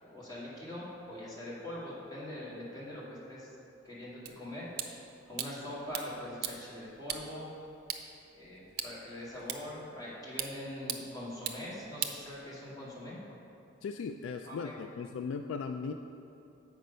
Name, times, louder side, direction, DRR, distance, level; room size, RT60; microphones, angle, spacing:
voice 1, 0.0-3.5 3.8-4.7 5.3-7.5 8.3-13.2 14.4-14.7, left 1 dB, 20° left, -8 dB, 2.0 m, -43 dB
sound 1, 4.3-12.9, right 9 dB, 55° right, 0.5 m, -42 dB
voice 2, 13.8-15.9, left 5 dB, 85° left, 7 dB, 0.3 m, -37 dB
7.8 x 5.3 x 5.5 m, 2.8 s
head